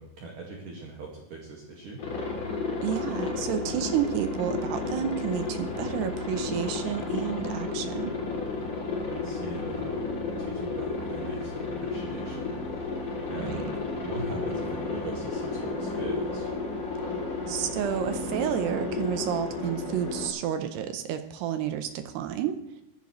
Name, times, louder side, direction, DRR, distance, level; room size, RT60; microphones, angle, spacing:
voice 1, 0.0-2.0 9.0-10.1 10.4-12.6 13.3-13.7 14.0-16.5, right 3 dB, 55° right, -2 dB, 3.2 m, -41 dB
Aircraft, 2.0-20.3, left 3 dB, 40° left, 3.8 m, -32 dB
voice 2, 2.8-8.1 13.3-13.7 17.5-22.6, right 10 dB, 75° right, 9 dB, 2.8 m, -30 dB
19.0 x 14.5 x 3.2 m, 0.80 s
omnidirectional pair, 5.0 m